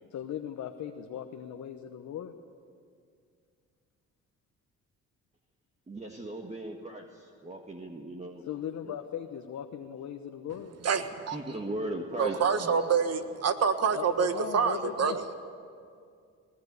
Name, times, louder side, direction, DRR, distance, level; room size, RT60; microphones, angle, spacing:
voice 1, 0.1-2.3 8.5-10.8 13.9-15.3, left 9 dB, 65° left, 5 dB, 1.1 m, -38 dB
voice 2, 5.9-8.5 8.9-9.0 11.3-12.8, right 1 dB, 20° right, 2 dB, 1.7 m, -38 dB
voice 3, 10.8-11.4 12.2-15.2, right 6 dB, 55° right, 9 dB, 1.6 m, -27 dB
20.5 x 19.0 x 8.3 m, 2.3 s
cardioid pair, 90°, 30 cm